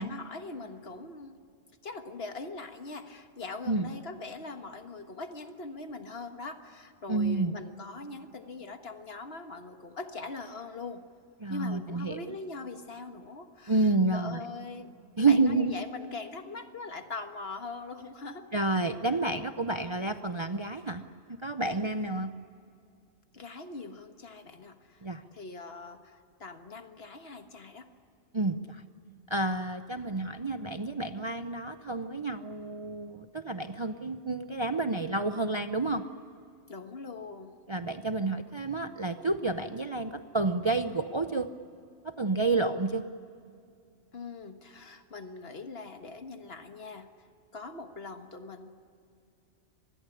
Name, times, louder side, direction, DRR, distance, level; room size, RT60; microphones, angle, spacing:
voice 1, 0.0-1.4 1.8-11.0 11.5-14.9 15.2-18.5 23.3-27.9 36.7-37.6 44.1-47.3 47.5-48.7, left 3 dB, 55° left, 7 dB, 1.7 m, -42 dB
voice 2, 7.1-7.6 11.4-12.4 13.7-14.4 15.2-15.7 18.5-21.0 21.3-22.3 25.0-25.2 28.3-28.8 29.3-36.0 37.7-41.5 42.0-43.0, right 3 dB, 30° right, 9 dB, 0.6 m, -29 dB
25.5 x 20.5 x 9.9 m, 2.5 s
omnidirectional pair, 1.2 m